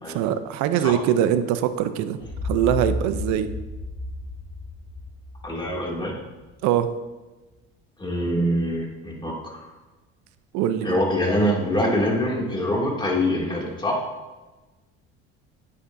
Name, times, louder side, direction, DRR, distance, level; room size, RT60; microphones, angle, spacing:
voice 1, 0.1-2.2 2.4-3.5 6.6-6.9 10.5-11.0, right 10 dB, 70° right, 11 dB, 0.7 m, -22 dB
sound 1, 2.2-6.1, left 2 dB, 70° left, 2.6 m, -32 dB
voice 2, 5.4-6.1 8.0-9.6 10.8-14.0, equal, 15° left, -3 dB, 2.5 m, -24 dB
9.4 x 8.4 x 2.7 m, 1.2 s
supercardioid pair, 90°, 30 cm